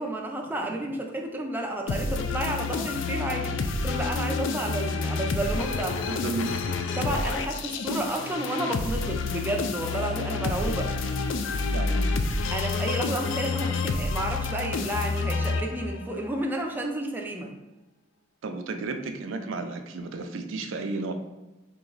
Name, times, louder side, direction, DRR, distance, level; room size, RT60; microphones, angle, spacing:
voice 1, 0.0-6.1 6.9-10.9 12.5-17.5, right 1 dB, 10° right, 1 dB, 0.4 m, -31 dB
sound 1, 1.9-16.1, left 3 dB, 75° left, 0.4 m, -29 dB
voice 2, 6.1-6.5 11.7-12.2 18.4-21.1, right 3 dB, 80° right, 6 dB, 0.4 m, -33 dB
3.3 x 2.9 x 3.8 m, 1.1 s
head